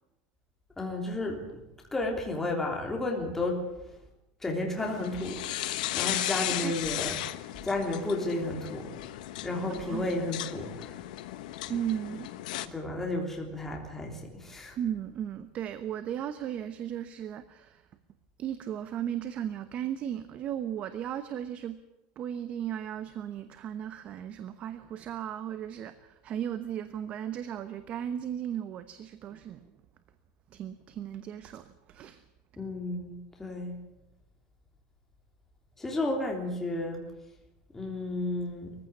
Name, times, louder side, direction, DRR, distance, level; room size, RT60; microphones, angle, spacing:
voice 1, 0.8-1.6 1.9-3.6 4.4-7.1 7.6-8.9 9.4-11.0 12.6-14.8 32.6-33.8 35.8-37.0 37.7-38.7, left 2 dB, 10° left, 0 dB, 3.3 m, -32 dB
sound 1, 4.8-12.7, left 15 dB, 90° left, 1.2 m, -36 dB
voice 2, 6.1-6.7 7.1-7.2 9.7-10.1 11.7-12.3 14.8-17.8 18.4-21.8 22.2-29.7 30.5-32.2, right 10 dB, 30° right, 11 dB, 1.0 m, -36 dB
21.5 x 15.5 x 9.7 m, 0.94 s
cardioid pair, 170°, 4 cm